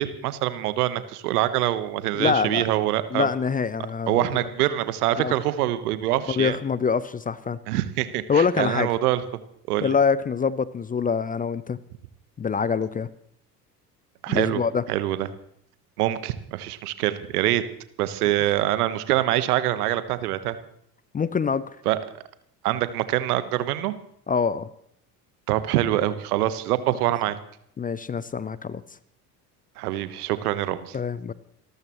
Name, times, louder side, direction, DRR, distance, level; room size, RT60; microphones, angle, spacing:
voice 1, 0.0-3.3 4.1-6.6 7.7-9.2 9.7-9.9 14.2-14.6 14.9-15.3 16.0-17.6 18.0-20.6 21.8-22.0 22.6-23.9 25.5-27.4 29.8-31.0, right 14 dB, 70° right, 13 dB, 1.3 m, -25 dB
voice 2, 2.2-2.7 3.1-4.3 5.2-5.3 6.3-7.6 8.3-8.9 9.8-11.8 12.4-13.1 14.3-14.8 21.1-21.8 24.3-24.7 27.8-28.8 30.9-31.3, left 6 dB, 20° left, 18 dB, 0.6 m, -25 dB
29.5 x 13.5 x 3.1 m, 0.69 s
figure-of-eight pair, 65°, 47 cm